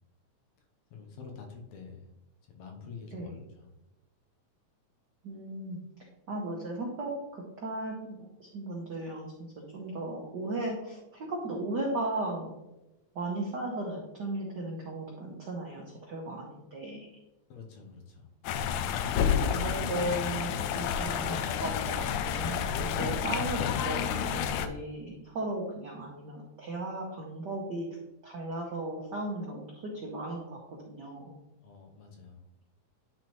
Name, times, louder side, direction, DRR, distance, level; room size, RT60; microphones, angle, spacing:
voice 1, 0.9-2.1 2.5-3.7 17.5-18.3 31.6-32.4, left 5 dB, 70° left, 3 dB, 2.1 m, -47 dB
voice 2, 5.2-5.8 6.3-9.3 9.7-12.6 13.1-17.1 19.5-27.9 28.2-31.3, right 2 dB, 70° right, -1 dB, 1.0 m, -36 dB
sound 1, 18.4-24.7, left 8 dB, 90° left, 2.0 m, -30 dB
10.5 x 4.1 x 3.1 m, 0.96 s
omnidirectional pair, 3.4 m